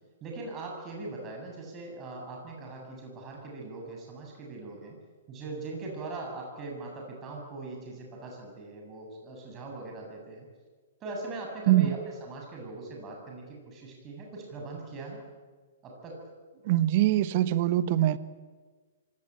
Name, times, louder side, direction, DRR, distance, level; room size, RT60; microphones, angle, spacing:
voice 1, 0.2-5.0 5.3-10.5 11.0-15.2 15.8-16.2, right 3 dB, 25° right, 0 dB, 7.9 m, -40 dB
voice 2, 16.6-18.2, right 14 dB, 45° right, 14 dB, 1.3 m, -23 dB
25.5 x 18.5 x 9.1 m, 1.4 s
figure-of-eight pair, 115°, 0 cm